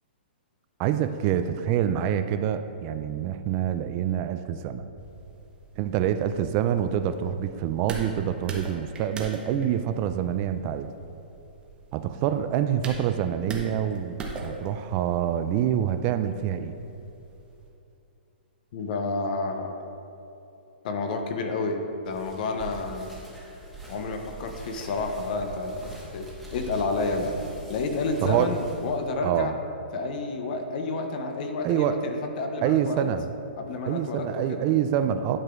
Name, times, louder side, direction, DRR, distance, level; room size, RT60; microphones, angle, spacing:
voice 1, 0.8-4.8 5.8-10.9 11.9-16.8 28.2-28.5 29.2-29.6 31.6-32.0 32.6-33.3 33.9-35.4, right 10 dB, 35° right, 10 dB, 0.3 m, -26 dB
sound 1, 4.9-17.7, right 3 dB, 15° right, 0.8 m, -42 dB
voice 2, 18.7-19.8 20.8-23.1 23.9-27.4 27.7-29.5 29.9-33.0 33.6-34.7, left 3 dB, 50° left, 5 dB, 0.7 m, -30 dB
sound 2, 22.0-29.1, right 2 dB, ahead, 1.3 m, -42 dB
10.5 x 4.8 x 2.5 m, 2.8 s
hypercardioid pair, 135°, 6 cm